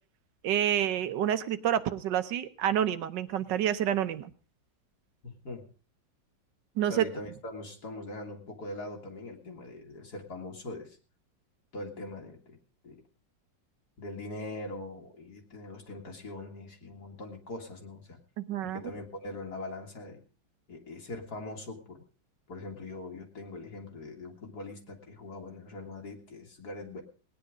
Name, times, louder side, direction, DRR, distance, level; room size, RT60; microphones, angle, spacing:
voice 1, 0.4-4.3 6.8-7.0 18.4-18.8, right 10 dB, 75° right, 12 dB, 1.5 m, -28 dB
voice 2, 5.2-5.7 6.9-11.0 11.7-12.6 12.8-13.0 14.0-18.2 18.6-20.2 20.7-22.0 22.5-27.0, left 2 dB, 60° left, 2 dB, 2.5 m, -42 dB
18.5 x 9.7 x 5.0 m, 0.38 s
omnidirectional pair, 1.9 m